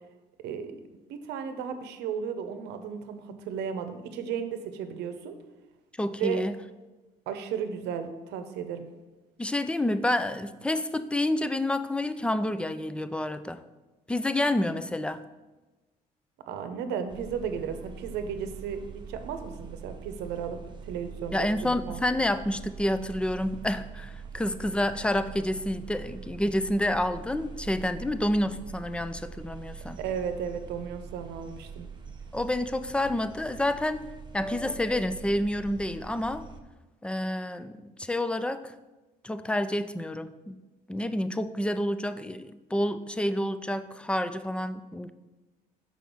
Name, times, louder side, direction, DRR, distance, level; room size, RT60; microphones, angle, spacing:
voice 1, 1.1-5.3 6.2-6.4 7.3-8.9 16.5-22.0 30.0-31.9, right 7 dB, 85° right, 9 dB, 0.7 m, -34 dB
voice 2, 6.0-6.5 9.4-13.6 14.1-15.2 21.3-30.0 32.3-34.0 34.3-36.4 37.0-38.7 39.2-40.6 40.9-45.1, left 1 dB, 5° left, 12 dB, 0.3 m, -29 dB
sound 1, 17.1-36.6, right 5 dB, 25° right, 0.7 m, -43 dB
6.1 x 4.7 x 5.3 m, 1.1 s
cardioid pair, 110°, 17 cm